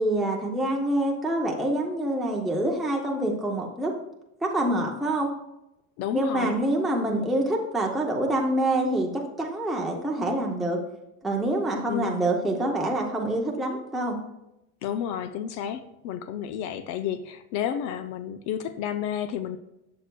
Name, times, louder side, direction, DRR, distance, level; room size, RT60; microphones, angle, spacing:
voice 1, 0.0-3.9 4.4-5.3 6.1-10.8 11.2-14.2, right 1 dB, ahead, -1 dB, 0.5 m, -26 dB
voice 2, 6.0-6.5 7.0-7.1 11.9-12.2 14.8-19.6, left 9 dB, 55° left, 10 dB, 0.5 m, -31 dB
12.0 x 6.7 x 2.2 m, 0.88 s
cardioid pair, 175°, 35 cm